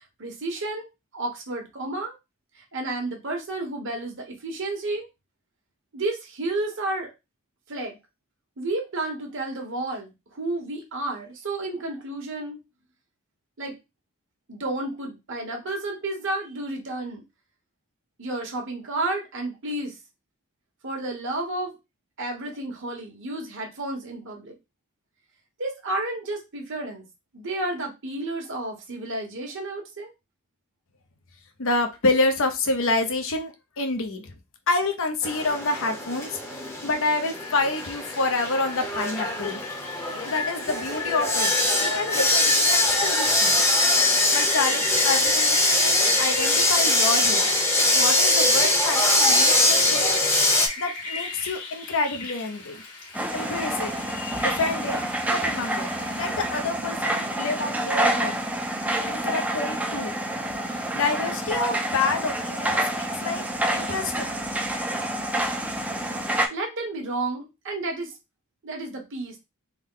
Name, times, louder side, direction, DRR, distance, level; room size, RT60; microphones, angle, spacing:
voice 1, 0.2-0.9 1.1-2.1 2.7-5.1 5.9-7.1 7.7-8.0 8.6-12.6 13.6-13.7 14.5-17.2 18.2-20.0 20.8-21.7 22.2-24.5 25.6-27.0 27.3-30.1 66.5-68.1 68.6-69.3, right 2 dB, 60° right, 2 dB, 1.1 m, -31 dB
voice 2, 31.6-34.3 34.7-39.6 40.2-41.5 41.8-43.6 44.3-47.4 47.9-50.1 50.8-52.8 53.3-53.9 54.4-55.0 55.3-55.9 56.2-58.4 59.1-60.1 60.6-63.4 63.7-64.4, left 3 dB, 65° left, 6 dB, 0.7 m, -28 dB
sound 1, 35.2-50.7, left 1 dB, 10° left, 0.8 m, -22 dB
Rain, 37.1-56.5, left 3 dB, 85° left, 1.5 m, -35 dB
sound 2, 53.1-66.5, right 1 dB, 5° right, 0.4 m, -28 dB
3.5 x 2.2 x 3.7 m, 0.24 s
head